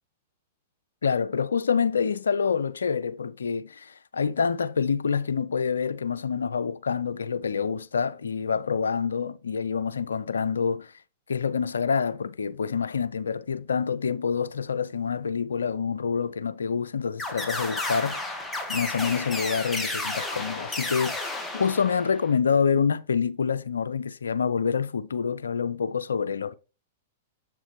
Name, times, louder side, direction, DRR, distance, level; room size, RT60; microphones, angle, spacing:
voice 1, 1.0-10.9 11.3-18.4 18.7-26.5, left 6 dB, 80° left, 0.4 m, -27 dB
sound 1, 17.2-22.4, left 2 dB, 10° left, 1.6 m, -32 dB
7.4 x 7.3 x 3.1 m
hypercardioid pair, 105°, 0 cm